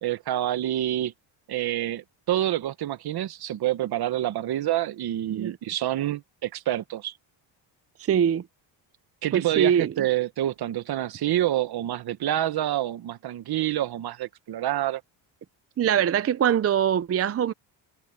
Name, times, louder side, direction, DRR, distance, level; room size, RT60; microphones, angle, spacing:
voice 1, 0.0-1.1 1.5-7.1 9.2-15.0, right 13 dB, 55° right, 1.2 m, -27 dB
voice 2, 8.0-8.4 9.3-9.9 15.8-17.5, right 9 dB, 30° right, 0.6 m, -23 dB
cardioid pair, 120°, 46 cm